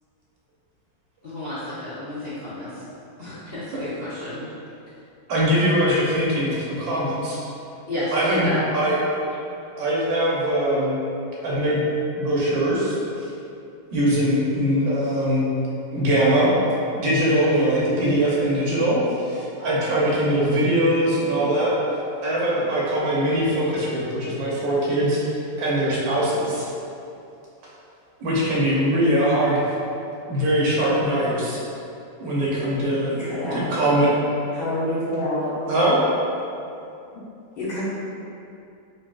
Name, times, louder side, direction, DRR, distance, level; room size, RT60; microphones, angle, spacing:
voice 1, 1.2-2.7 3.2-4.4 7.9-8.6, left 1 dB, 55° left, -12 dB, 0.7 m, -31 dB
voice 2, 5.3-7.4 8.1-9.0 9.8-11.0 11.4-11.8 12.2-12.9 13.9-15.5 15.9-16.5 17.0-21.7 22.2-25.2 25.6-26.6 28.2-29.6 30.3-31.6 32.2-33.1 33.5-34.1 35.7-36.0, right 1 dB, 85° right, -6 dB, 1.5 m, -21 dB
voice 3, 33.1-33.6 34.5-35.5 37.6-37.8, left 1 dB, 75° left, -12 dB, 1.6 m, -27 dB
3.9 x 3.5 x 2.3 m, 2.7 s
omnidirectional pair, 2.0 m